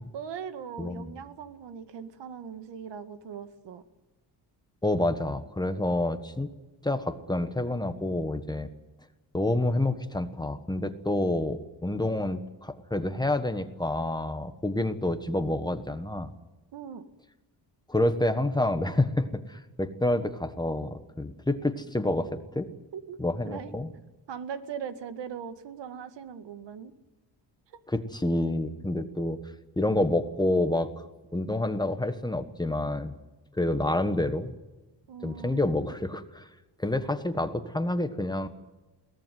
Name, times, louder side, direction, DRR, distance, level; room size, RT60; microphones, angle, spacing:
voice 1, 0.1-3.8 16.7-17.1 22.7-23.2 23.4-23.7 24.3-26.9 27.7-27.8 35.1-35.8, right 7 dB, 75° right, 10 dB, 2.0 m, -40 dB
voice 2, 0.8-1.2 4.8-6.5 6.8-8.7 9.3-16.3 17.9-22.7 23.2-23.9 27.9-29.4 29.8-31.1 31.3-33.1 33.6-34.5 35.2-36.5 36.8-38.5, left 1 dB, 10° left, 9 dB, 1.3 m, -28 dB
22.0 x 18.0 x 9.3 m, 1.1 s
cardioid pair, 160°, 43 cm